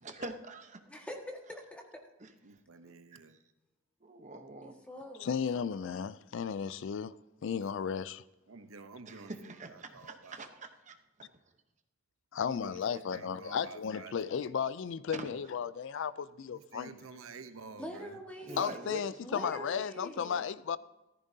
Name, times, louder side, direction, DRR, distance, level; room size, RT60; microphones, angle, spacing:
voice 1, 0.0-0.8 2.2-2.3 4.0-4.7 9.1-11.3 15.2-15.3 18.4-19.6, right 2 dB, 35° right, 0.9 m, -45 dB
voice 2, 0.9-2.0 4.6-5.3 5.5-6.0 17.7-18.9 19.2-20.4, equal, 5° left, 1.7 m, -45 dB
voice 3, 2.4-3.4 8.5-10.4 12.4-14.5 16.5-18.2 18.5-18.6, right 4 dB, 85° right, 0.8 m, -50 dB
voice 4, 5.2-7.1 7.4-8.2 12.3-16.9 18.6-20.8, left 7 dB, 60° left, 0.4 m, -34 dB
14.5 x 14.0 x 2.7 m
head